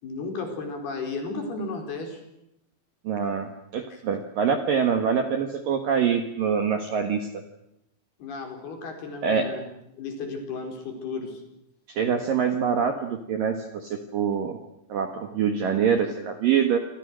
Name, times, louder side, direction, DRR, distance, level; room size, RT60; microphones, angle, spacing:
voice 1, 0.0-2.2 3.9-4.0 8.2-9.7 9.9-11.4, left 3 dB, 50° left, 4 dB, 6.2 m, -34 dB
voice 2, 3.0-7.4 9.2-9.4 11.9-14.6 14.9-16.8, right 7 dB, 60° right, 6 dB, 2.5 m, -25 dB
28.0 x 26.0 x 6.4 m, 0.83 s
omnidirectional pair, 5.8 m